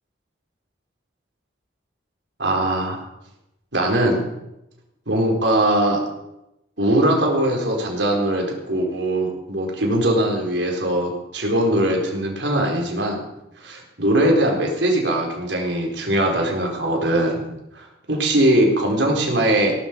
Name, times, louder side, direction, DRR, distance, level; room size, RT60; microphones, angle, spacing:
voice 1, 2.4-3.0 3.7-4.2 5.1-6.0 6.8-13.2 13.6-17.4 17.7-19.7, right 1 dB, 80° right, 0 dB, 4.5 m, -21 dB
18.0 x 12.0 x 5.3 m, 0.87 s
head